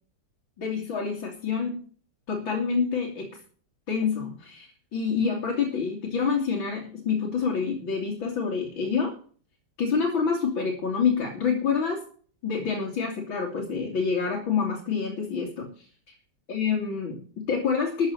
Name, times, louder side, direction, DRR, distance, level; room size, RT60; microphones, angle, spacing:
voice 1, 0.6-1.8 2.3-3.3 3.9-9.1 9.8-12.0 12.4-15.9 16.5-18.1, left 5 dB, 80° left, 0 dB, 3.5 m, -27 dB
13.5 x 7.6 x 7.9 m, 0.44 s
omnidirectional pair, 2.1 m